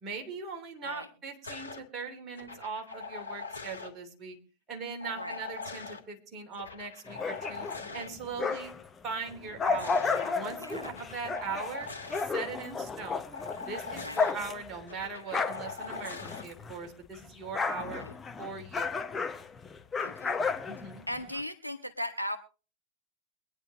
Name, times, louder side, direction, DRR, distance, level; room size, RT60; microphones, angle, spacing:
voice 1, 0.0-4.4 4.7-7.7 7.9-8.7 9.0-10.0 10.3-18.0 18.4-19.0 20.7-21.1, right 5 dB, 30° right, 2 dB, 3.0 m, -40 dB
sound 1, 1.4-1.8 2.4-3.9 5.0-6.0 6.5-8.1 9.4-10.2 10.7-12.2 13.3-14.3 14.9-16.4 17.7-18.1, left 4 dB, 75° left, 1.9 m, -42 dB
sound 2, 7.1-8.9 9.3-16.9 17.1-21.4, left 5 dB, 20° left, 0.9 m, -33 dB
voice 2, 9.7-10.9 14.0-14.3 17.8-18.1 20.0-20.4 21.1-22.4, equal, 90° right, 10 dB, 0.8 m, -39 dB
23.0 x 10.0 x 3.1 m, 0.36 s
figure-of-eight pair, 90°, 0 cm